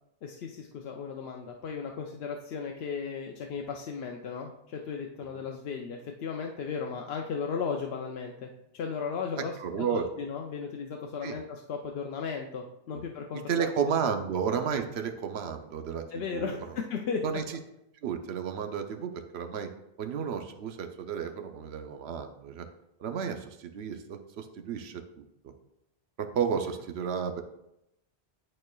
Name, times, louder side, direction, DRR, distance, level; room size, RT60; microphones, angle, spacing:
voice 1, 0.2-13.7 16.1-17.4, left 5 dB, 70° left, 1 dB, 0.8 m, -36 dB
voice 2, 9.6-10.1 11.2-11.4 12.9-13.0 13.5-16.0 16.3-16.6 17.2-17.4 18.0-19.7 20.0-22.7 23.0-25.2 26.2-27.4, right 7 dB, 75° right, 6 dB, 0.9 m, -32 dB
10.5 x 4.4 x 2.3 m, 0.84 s
omnidirectional pair, 1.1 m